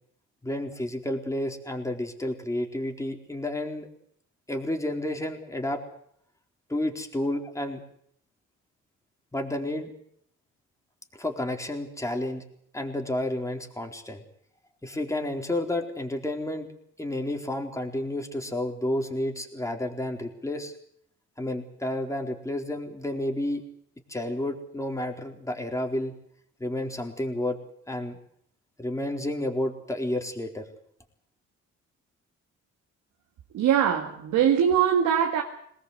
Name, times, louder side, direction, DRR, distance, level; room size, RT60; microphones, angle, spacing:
voice 1, 0.4-3.9 4.5-5.8 6.7-7.8 9.3-9.9 11.1-12.4 12.7-14.2 14.8-16.7 17.0-20.7 21.4-23.6 24.1-26.1 26.6-27.6 27.9-28.2 28.8-30.6, left 1 dB, 10° left, 3 dB, 4.1 m, -31 dB
voice 2, 33.5-35.4, right 9 dB, 80° right, 2 dB, 2.2 m, -22 dB
22.0 x 19.5 x 8.1 m, 0.69 s
cardioid pair, 90°, 30 cm